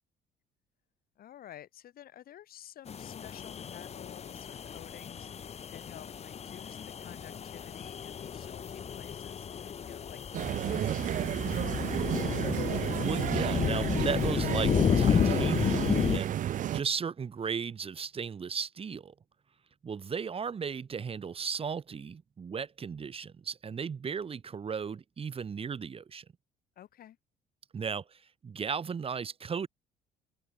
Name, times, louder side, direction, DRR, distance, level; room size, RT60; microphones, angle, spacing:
voice 1, 1.2-11.8 26.8-27.2, left 11 dB, 60° left, 7.2 m, -52 dB
sound 1, 2.9-16.2, left 7 dB, 40° left, 1.5 m, -32 dB
sound 2, 10.3-16.8, right 11 dB, 50° right, 0.7 m, -32 dB
Chink clink, 12.5-13.1 13.4-18.1 18.3-18.6, right 18 dB, 85° right, 6.1 m, -57 dB
voice 2, 13.0-16.4 16.7-19.1 19.8-26.2 27.7-29.7, right 6 dB, 35° right, 2.5 m, -35 dB
cardioid pair, 110°, 17 cm